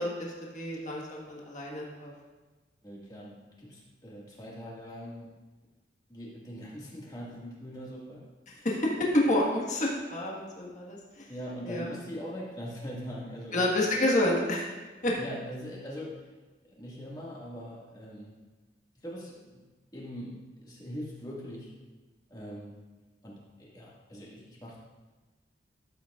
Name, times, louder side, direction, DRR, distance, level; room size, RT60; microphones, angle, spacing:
voice 1, 0.0-2.1 8.6-8.8 9.1-11.2 11.6-12.0 13.5-14.7 15.0-15.1, left 1 dB, 40° left, -3 dB, 1.6 m, -29 dB
voice 2, 2.8-5.3 6.1-8.2 8.6-8.7 11.3-13.6 15.2-16.2 16.7-18.4 19.0-19.6 19.9-21.7 22.3-22.8 23.2-24.8, equal, 20° left, -5 dB, 1.9 m, -42 dB
13.5 x 7.7 x 2.5 m, 1.2 s
head